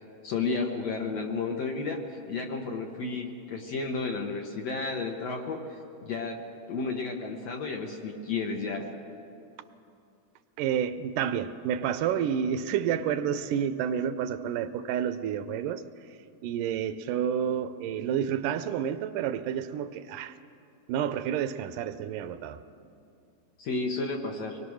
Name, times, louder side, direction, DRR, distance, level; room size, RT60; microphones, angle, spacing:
voice 1, 0.2-6.4 6.7-8.9 23.6-24.6, left 4 dB, 60° left, 1 dB, 2.0 m, -32 dB
voice 2, 10.6-20.4 20.9-22.6, right 8 dB, 80° right, 11 dB, 2.2 m, -30 dB
24.0 x 21.0 x 6.3 m, 2.5 s
omnidirectional pair, 3.8 m